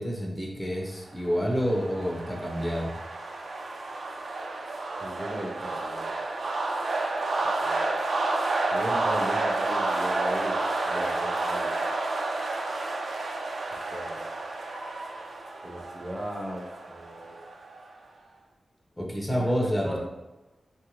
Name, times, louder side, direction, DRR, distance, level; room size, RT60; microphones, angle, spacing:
voice 1, 0.0-2.9 19.0-20.0, equal, 15° left, -2 dB, 0.8 m, -28 dB
sound 1, 1.2-17.9, right 2 dB, 75° right, 0.4 m, -30 dB
voice 2, 5.0-6.2 7.4-8.0 8.7-11.9 13.7-14.4 15.6-17.5 19.3-20.0, equal, 15° right, -2 dB, 0.6 m, -38 dB
2.7 x 2.4 x 3.1 m, 1.1 s
cardioid pair, 45°, 0 cm